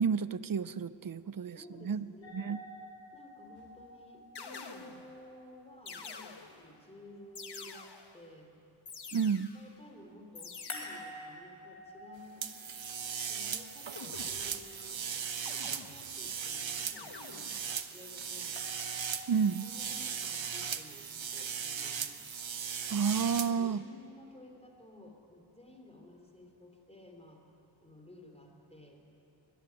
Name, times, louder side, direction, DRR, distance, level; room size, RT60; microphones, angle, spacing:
voice 1, 0.0-2.1 2.3-2.6 9.1-9.5 19.3-19.7 22.9-23.8, right 6 dB, 45° right, 16 dB, 0.6 m, -30 dB
voice 2, 1.5-2.5 3.1-8.5 9.5-12.5 13.2-17.5 17.9-18.6 19.6-22.2 23.3-27.4 27.8-29.0, left 1 dB, 15° left, 2 dB, 3.3 m, -54 dB
sound 1, 2.2-7.2 10.7-14.8 18.6-19.8, left 1 dB, 85° left, 3.9 m, -50 dB
sound 2, 3.6-3.9 4.3-5.2 5.9-6.8 7.3-8.3 8.9-9.8 10.3-11.2 13.9-14.7 15.4-16.3 16.9-17.7, left 5 dB, 60° left, 1.3 m, -48 dB
sound 3, 12.4-23.5, right 7 dB, 75° right, 1.0 m, -38 dB
22.0 x 15.0 x 9.4 m, 2.8 s
wide cardioid pair, 85°, 46 cm